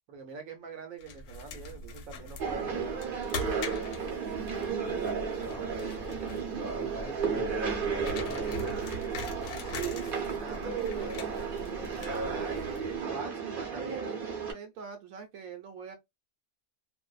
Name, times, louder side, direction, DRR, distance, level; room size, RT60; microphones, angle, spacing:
voice 1, 0.1-2.9 9.6-11.3 11.7-16.0, right 5 dB, 70° right, 0.9 m, -44 dB
sound 1, 1.0-13.1, left 2 dB, 85° left, 1.1 m, -42 dB
sound 2, 2.4-14.5, right 6 dB, 50° right, 0.6 m, -33 dB
voice 2, 4.0-4.7 5.4-7.5 7.9-9.0, left 3 dB, 50° left, 0.7 m, -47 dB
2.6 x 2.1 x 2.3 m
omnidirectional pair, 1.6 m